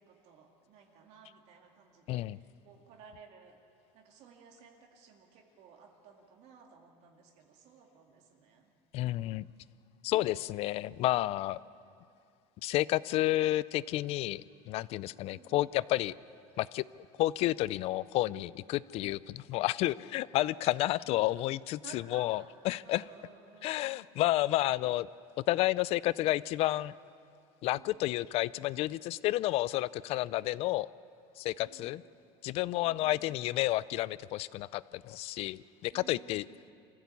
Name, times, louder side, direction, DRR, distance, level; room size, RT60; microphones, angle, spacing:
voice 1, 0.0-3.6 3.9-8.7 10.7-11.4 15.1-15.6 21.1-21.3 21.8-22.5 22.8-24.2 27.7-28.0 31.6-31.9 32.8-33.4 35.9-36.7, right 7 dB, 55° right, 1 dB, 2.3 m, -57 dB
voice 2, 2.1-2.4 8.9-9.5 10.0-11.6 12.6-16.1 16.6-16.8 17.2-23.0 23.6-25.1 25.5-26.9 27.6-30.9 31.4-32.0 32.4-36.5, left 16 dB, 50° left, 20 dB, 0.4 m, -31 dB
24.5 x 15.5 x 8.4 m, 2.4 s
cardioid pair, 150°, 13 cm